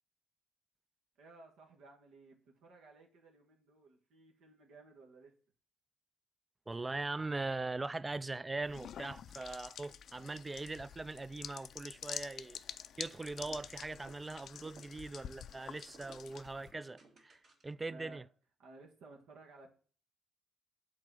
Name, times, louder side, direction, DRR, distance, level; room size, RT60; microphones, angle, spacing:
voice 1, 1.2-5.3 17.8-18.2 18.6-19.7, right 3 dB, 85° right, 1.6 m, -57 dB
voice 2, 6.7-12.6 13.0-18.2, right 3 dB, 20° right, 0.3 m, -41 dB
sound 1, 8.6-16.7, left 9 dB, 65° left, 0.4 m, -48 dB
sound 2, 13.2-17.8, right 3 dB, 60° right, 2.4 m, -61 dB
7.5 x 4.0 x 6.1 m
cardioid pair, 90°, 0 cm